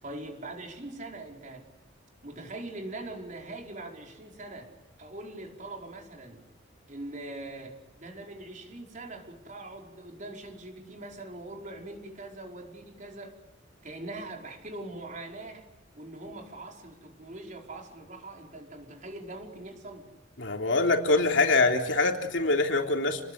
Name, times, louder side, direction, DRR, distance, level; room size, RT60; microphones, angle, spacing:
voice 1, 0.0-1.7 2.2-4.7 5.0-6.4 6.9-13.3 13.8-15.7 15.9-20.1, right 2 dB, 40° right, 1 dB, 5.1 m, -42 dB
voice 2, 20.4-23.2, left 3 dB, 65° left, 3 dB, 3.6 m, -24 dB
30.0 x 20.5 x 8.3 m, 1.1 s
head